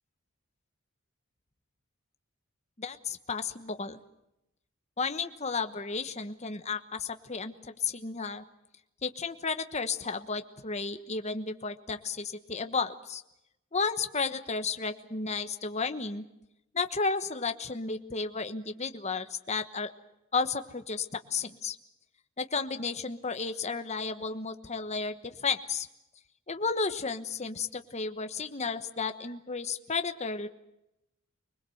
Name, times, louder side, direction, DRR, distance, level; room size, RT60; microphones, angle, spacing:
voice 1, 2.8-4.0 5.0-8.4 9.0-13.2 13.7-16.2 16.7-19.9 20.3-21.8 22.4-25.9 26.5-30.5, left 4 dB, 30° left, 8 dB, 1.2 m, -33 dB
25.5 x 20.5 x 7.9 m, 0.86 s
head